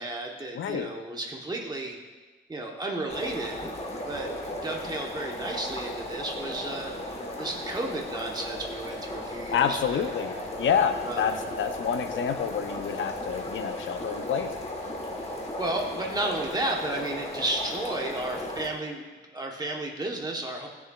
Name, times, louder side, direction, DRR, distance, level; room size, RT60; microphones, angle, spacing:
voice 1, 0.0-2.0 2.5-3.7 4.1-6.9 7.4-10.1 11.0-11.3 15.6-19.0 19.3-20.7, right 2 dB, 20° right, 0 dB, 1.0 m, -33 dB
voice 2, 0.5-0.9 9.5-14.6, left 7 dB, 80° left, 8 dB, 0.6 m, -28 dB
sound 1, 3.1-18.7, left 1 dB, 30° left, 1.2 m, -36 dB
15.0 x 7.0 x 2.3 m, 1.3 s
wide cardioid pair, 150°, 20 cm